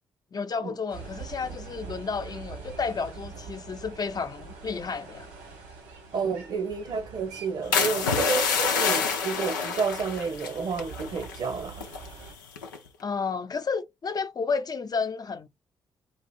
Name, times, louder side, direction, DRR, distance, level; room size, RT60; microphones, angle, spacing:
voice 1, 0.3-5.3 13.0-15.5, left 5 dB, 40° left, 0.8 m, -31 dB
sound 1, 0.9-12.3, right 5 dB, 80° right, 1.9 m, -44 dB
voice 2, 6.1-11.8, right 5 dB, 55° right, 1.0 m, -30 dB
sound 2, 7.7-11.5 11.7-12.1 12.6-12.9, left 5 dB, 85° left, 0.7 m, -27 dB
4.7 x 2.4 x 4.2 m
hypercardioid pair, 40°, 10 cm